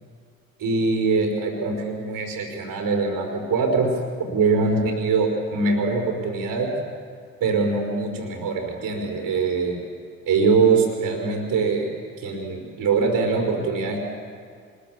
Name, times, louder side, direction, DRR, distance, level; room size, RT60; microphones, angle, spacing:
voice 1, 0.6-3.9 4.3-6.7 7.4-9.8 10.2-11.9 12.2-14.0, right 4 dB, 55° right, 0 dB, 5.1 m, -23 dB
24.5 x 21.5 x 7.7 m, 2.1 s
figure-of-eight pair, 50°, 40 cm